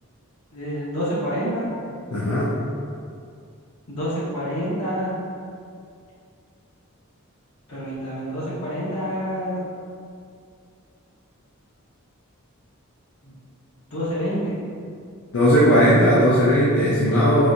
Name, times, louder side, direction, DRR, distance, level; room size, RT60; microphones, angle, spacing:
voice 1, 0.5-1.7 3.9-5.1 7.7-9.6 13.2-13.3 13.9-14.5, equal, 85° left, -9 dB, 1.2 m, -27 dB
voice 2, 2.1-2.5 15.3-17.5, equal, 70° left, -8 dB, 0.5 m, -17 dB
4.1 x 2.5 x 2.6 m, 2.4 s
head